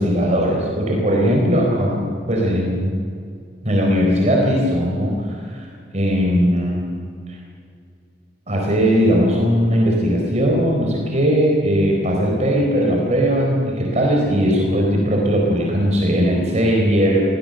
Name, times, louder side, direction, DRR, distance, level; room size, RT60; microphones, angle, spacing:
voice 1, 0.0-2.9 3.6-5.7 5.9-6.9 7.3-7.4 8.5-17.2, equal, 40° right, -1 dB, 4.0 m, -18 dB
23.5 x 17.0 x 7.7 m, 2.3 s
head